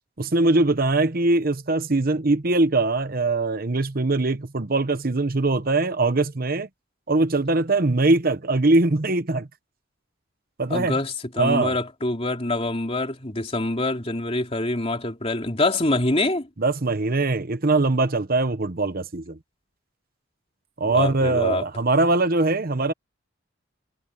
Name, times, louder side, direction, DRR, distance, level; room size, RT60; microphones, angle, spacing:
voice 1, 0.2-6.7 7.1-9.5 10.6-10.9 11.4-11.8 16.6-19.4 20.8-22.9, right 2 dB, 45° right, 1.0 m, -22 dB
voice 2, 10.7-16.5 20.9-21.6, left 2 dB, 30° left, 3.3 m, -25 dB
head